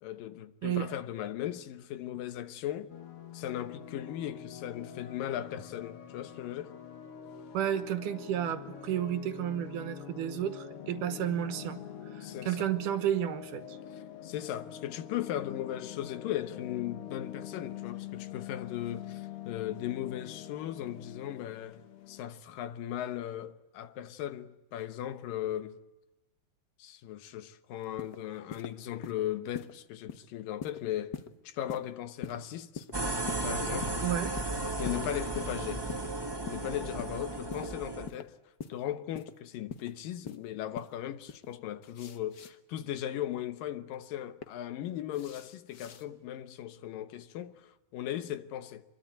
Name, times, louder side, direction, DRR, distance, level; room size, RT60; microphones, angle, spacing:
voice 1, 0.0-2.9 3.3-6.8 12.2-12.7 13.9-25.8 26.8-31.1 31.4-32.9 33.4-33.9 34.8-35.9 36.5-38.4 38.7-48.8, left 11 dB, 85° left, 2.8 m, -37 dB
sound 1, 2.9-22.2, left 10 dB, 55° left, 1.9 m, -45 dB
voice 2, 7.5-11.8 12.1-13.8 34.0-34.4, right 10 dB, 75° right, 2.7 m, -32 dB
sound 2, 27.8-28.2 28.5-28.7 29.0-29.2 29.5-29.7 30.1-30.2 30.6-30.8 31.1-31.3 31.7-31.9 32.2-32.4 32.7-32.9 33.3-33.5 33.8-34.0 34.4-34.5 34.8-35.0 35.3-35.5 35.9-36.1 36.5-36.6 37.0-37.1 37.5-37.7 38.1-38.2 38.6-38.7 39.1-39.3 39.7-39.9 40.3-40.4 40.7-40.9 41.3-41.5 41.8-42.5 43.9-44.5 45.1-46.0, left 8 dB, 70° left, 1.0 m, -42 dB
sound 3, 32.9-38.1, right 2 dB, 25° right, 0.5 m, -34 dB
25.5 x 22.5 x 9.4 m
omnidirectional pair, 3.8 m